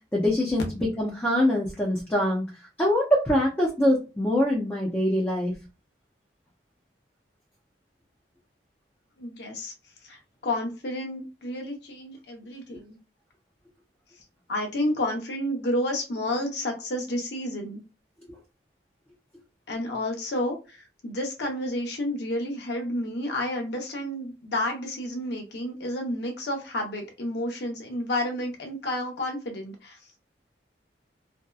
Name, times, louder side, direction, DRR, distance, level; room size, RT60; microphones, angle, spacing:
voice 1, 0.1-2.5 2.8-5.5, left 1 dB, 10° left, -3 dB, 0.5 m, -24 dB
voice 2, 9.2-9.7 10.0-13.0 14.5-17.8 19.7-30.2, left 1 dB, 65° left, 2 dB, 0.8 m, -30 dB
2.7 x 2.2 x 2.3 m, 0.29 s
head